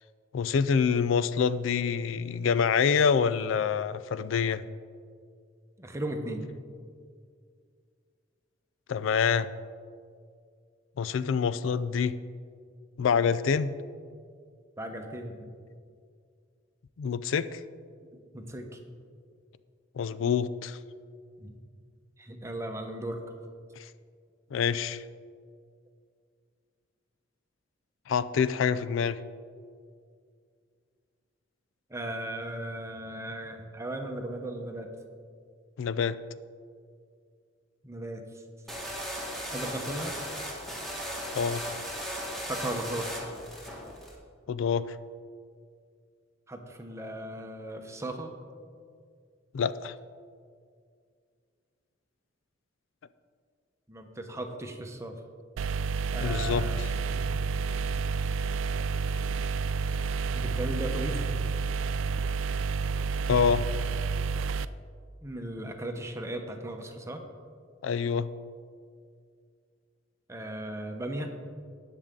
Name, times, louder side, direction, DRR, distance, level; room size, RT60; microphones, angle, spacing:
voice 1, 0.3-4.6 8.9-9.5 11.0-12.2 13.0-13.7 17.0-17.6 20.0-20.8 24.5-25.0 28.1-29.2 35.8-36.2 41.3-41.6 44.5-45.0 49.5-49.9 56.2-56.9 63.3-63.6 67.8-68.3, left 6 dB, 75° left, 15 dB, 0.4 m, -26 dB
voice 2, 5.8-6.4 14.8-15.5 18.3-18.8 21.4-21.6 22.2-23.2 31.9-34.9 37.8-38.4 39.5-40.2 42.5-43.1 46.5-48.3 53.9-55.2 56.1-56.8 57.1-57.4 60.3-61.3 65.2-67.2 70.3-71.3, right 1 dB, 15° right, 4 dB, 0.9 m, -36 dB
sound 1, 38.7-44.1, equal, ahead, 1.8 m, -37 dB
sound 2, 55.6-64.7, right 4 dB, 80° right, 0.3 m, -30 dB
18.0 x 6.7 x 3.7 m, 2.2 s
head